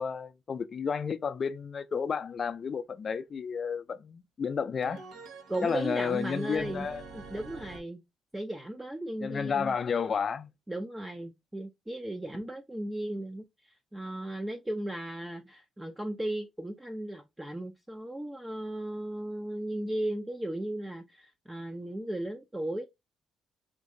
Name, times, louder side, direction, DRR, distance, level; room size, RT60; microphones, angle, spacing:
voice 1, 0.0-5.0 5.6-7.0 9.2-10.5, left 6 dB, 45° left, 0.4 m, -31 dB
sound 1, 4.8-7.8, right 4 dB, 70° right, 0.9 m, -46 dB
voice 2, 5.5-6.9 7.1-8.0 8.3-9.7 10.7-22.9, right 1 dB, 10° right, 0.5 m, -36 dB
3.0 x 2.6 x 3.6 m
cardioid pair, 90°, 0 cm